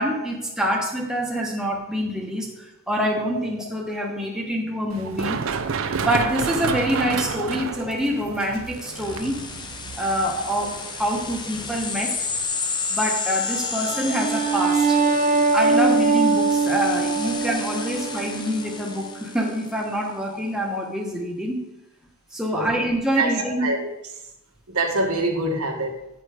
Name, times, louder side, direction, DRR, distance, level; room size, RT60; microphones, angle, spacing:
voice 1, 0.0-5.4 6.0-9.4 10.0-10.7 11.0-12.3 12.9-15.0 15.5-21.6 22.3-23.7, equal, 5° right, -1 dB, 1.0 m, -26 dB
Run, 4.9-12.4, right 5 dB, 70° right, 0.5 m, -30 dB
sound 1, 8.7-19.8, left 4 dB, 20° left, 0.5 m, -32 dB
sound 2, 13.9-19.2, right 4 dB, 35° right, 0.7 m, -22 dB
voice 2, 23.1-23.9 24.7-25.9, right 2 dB, 90° right, 2 dB, 1.4 m, -25 dB
9.4 x 4.4 x 4.9 m, 0.88 s
head